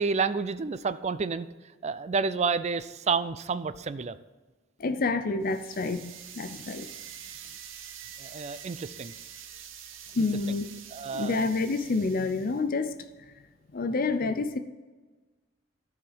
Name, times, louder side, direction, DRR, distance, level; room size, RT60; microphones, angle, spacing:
voice 1, 0.0-1.5 1.8-4.2 8.2-9.1 10.9-11.4, right 5 dB, 35° right, 13 dB, 0.4 m, -29 dB
voice 2, 4.8-6.9 10.2-10.7 11.1-13.0 13.7-14.6, left 3 dB, 45° left, 9 dB, 0.5 m, -28 dB
sound 1, 5.4-12.6, right 9 dB, 70° right, 0.8 m, -46 dB
13.5 x 4.8 x 5.5 m, 1.3 s
head